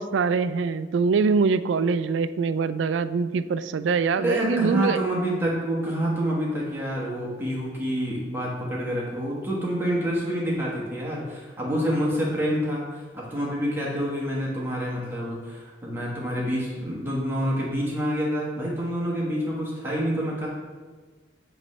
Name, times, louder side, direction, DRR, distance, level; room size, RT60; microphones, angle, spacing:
voice 1, 0.0-5.0, right 5 dB, 90° right, 13 dB, 0.3 m, -23 dB
voice 2, 4.2-20.5, equal, 10° right, -6 dB, 1.3 m, -27 dB
8.0 x 3.2 x 5.4 m, 1.4 s
head